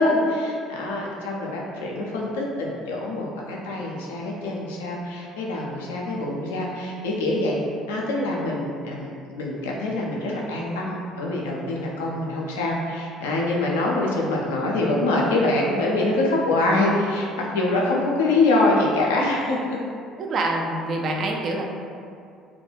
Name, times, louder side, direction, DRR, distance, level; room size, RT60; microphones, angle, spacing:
voice 1, 0.0-7.6 7.9-19.8, left 2 dB, 70° left, -3 dB, 0.4 m, -24 dB
voice 2, 20.2-21.7, right 2 dB, 45° right, 0 dB, 0.3 m, -26 dB
2.2 x 2.2 x 2.9 m, 2.4 s
figure-of-eight pair, 55°, 0 cm